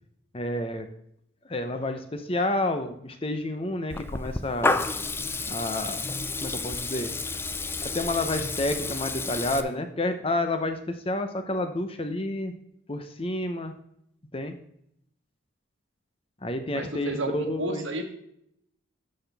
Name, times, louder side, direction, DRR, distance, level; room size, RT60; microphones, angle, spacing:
voice 1, 0.3-0.9 1.4-4.8 5.5-6.0 6.4-7.1 7.8-12.5 12.9-13.7 14.3-14.5 16.4-17.9, left 1 dB, 25° left, 7 dB, 0.8 m, -29 dB
Water tap faucet / Liquid, 3.9-9.6, left 3 dB, 10° left, 0.3 m, -30 dB
voice 2, 16.7-18.0, right 2 dB, 70° right, 5 dB, 1.4 m, -32 dB
12.0 x 5.9 x 3.4 m, 0.73 s
head